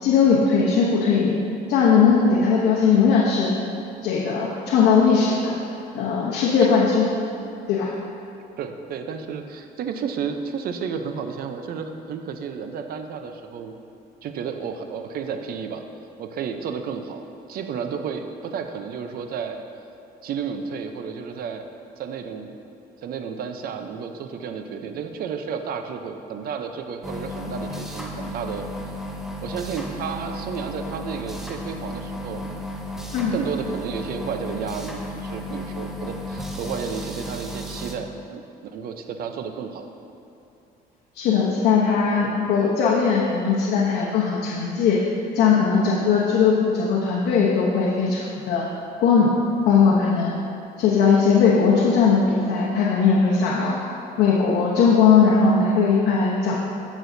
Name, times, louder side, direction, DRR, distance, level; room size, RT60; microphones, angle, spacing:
voice 1, 0.0-1.4 1.7-3.5 4.0-5.5 5.9-7.1 7.7-7.9 33.1-33.4 41.1-45.0 45.3-48.7 49.0-49.4 49.7-50.3 50.8-53.8 54.2-56.7, left 5 dB, 75° left, -4 dB, 1.0 m, -19 dB
voice 2, 8.6-13.8 14.2-15.8 16.2-19.6 20.2-21.7 22.0-22.5 23.0-28.7 29.4-32.5 33.3-39.9, right 6 dB, 65° right, 6 dB, 0.7 m, -32 dB
sound 1, 27.0-37.9, left 1 dB, ahead, 0.8 m, -34 dB
14.5 x 6.2 x 2.7 m, 2.7 s
cardioid pair, 110°, 17 cm